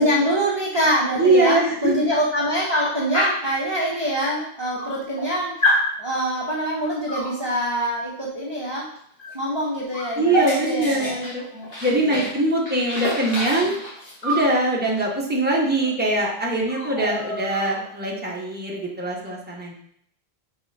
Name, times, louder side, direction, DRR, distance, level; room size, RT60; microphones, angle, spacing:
voice 1, 0.0-8.9 9.3-11.2 11.5-11.7 12.0-12.3 13.6-13.7, equal, 25° right, -5 dB, 1.1 m, -24 dB
voice 2, 1.2-1.9 10.2-11.4 11.8-13.8 14.2-19.7, right 2 dB, 10° right, -3 dB, 1.2 m, -22 dB
Dog, 3.1-3.5 4.4-4.5 4.7-5.3 5.6-5.9 7.1-7.4 9.2-9.4 9.6-12.4 12.7-14.5 15.8-15.9 16.2-16.4 16.7-17.9, equal, 55° left, 1.7 m, -27 dB
5.4 x 4.8 x 4.3 m, 0.68 s
omnidirectional pair, 1.1 m